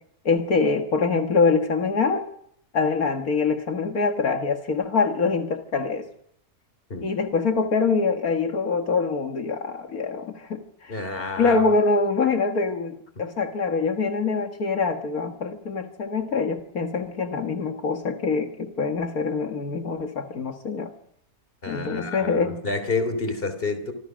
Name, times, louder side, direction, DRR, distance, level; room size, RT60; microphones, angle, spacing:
voice 1, 0.3-2.3 2.7-6.1 7.0-10.9 11.4-20.9 21.7-22.6, left 4 dB, 75° left, 4 dB, 2.1 m, -24 dB
voice 2, 10.9-11.7 21.6-23.9, left 3 dB, 40° left, 10 dB, 3.4 m, -29 dB
26.0 x 25.5 x 6.3 m, 0.71 s
omnidirectional pair, 1.6 m